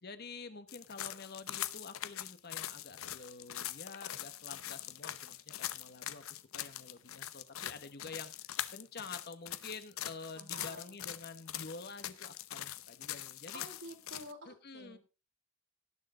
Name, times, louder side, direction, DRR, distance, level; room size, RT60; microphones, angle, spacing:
voice 1, 0.0-8.3 8.7-13.6 14.5-15.0, left 4 dB, 50° left, 11 dB, 1.1 m, -48 dB
sound 1, 0.7-14.3, left 12 dB, 75° left, 0.8 m, -42 dB
voice 2, 10.3-11.0 13.5-15.0, right 1 dB, 60° right, 4 dB, 3.0 m, -50 dB
18.5 x 6.5 x 3.8 m, 0.31 s
head